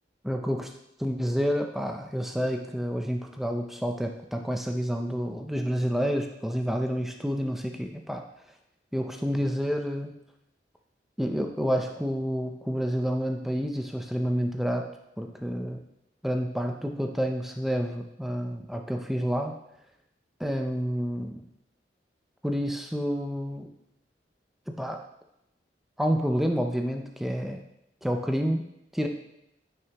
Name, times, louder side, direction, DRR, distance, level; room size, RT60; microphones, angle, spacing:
voice 1, 0.2-0.7 1.0-8.2 8.9-10.1 11.2-14.9 15.2-15.8 16.2-19.6 20.4-21.5 22.4-23.7 24.7-25.0 26.0-27.6 28.0-28.6 28.9-29.1, equal, ahead, 3 dB, 0.5 m, -29 dB
9.1 x 6.3 x 2.9 m, 0.81 s
head